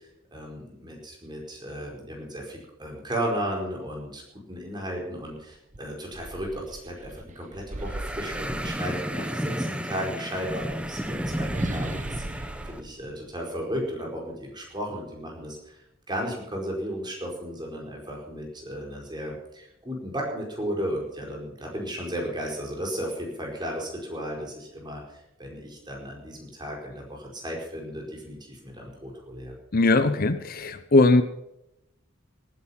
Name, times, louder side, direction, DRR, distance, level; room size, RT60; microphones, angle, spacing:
voice 1, 0.0-4.2 4.5-15.6 16.1-29.5, equal, 20° right, 0 dB, 4.7 m, -34 dB
sound 1, 5.2-5.3 5.7-9.4 10.3-13.9, right 1 dB, 40° right, 0.9 m, -39 dB
sound 2, 7.8-12.8, equal, 5° right, 0.9 m, -32 dB
voice 2, 29.7-31.2, left 2 dB, 45° left, 12 dB, 0.7 m, -20 dB
18.5 x 9.9 x 5.8 m, 0.85 s
head